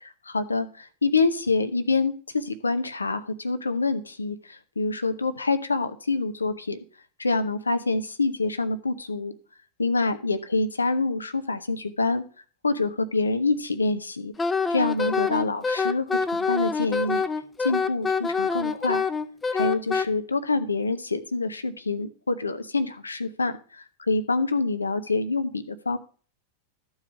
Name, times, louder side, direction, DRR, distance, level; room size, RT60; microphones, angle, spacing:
voice 1, 0.0-6.8 7.2-9.3 9.8-12.2 12.6-14.3 14.7-17.2 17.6-19.1 19.5-26.0, left 3 dB, 80° left, 11 dB, 0.7 m, -26 dB
Wind instrument woodwind instrument, 14.4-20.1, left 5 dB, 15° left, 0.7 m, -26 dB
13.0 x 4.8 x 6.3 m, 0.39 s
figure-of-eight pair, 90°, 0 cm